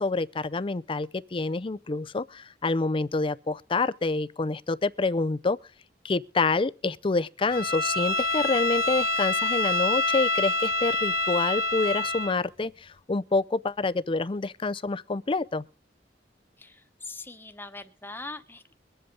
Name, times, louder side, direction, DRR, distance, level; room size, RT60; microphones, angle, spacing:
voice 1, 0.0-5.6 6.0-15.6, left 3 dB, 30° left, 0.5 m, -27 dB
Bowed string instrument, 7.5-12.4, left 2 dB, 55° left, 1.5 m, -26 dB
voice 2, 16.6-18.7, left 3 dB, 10° left, 1.1 m, -41 dB
22.5 x 7.8 x 3.8 m
head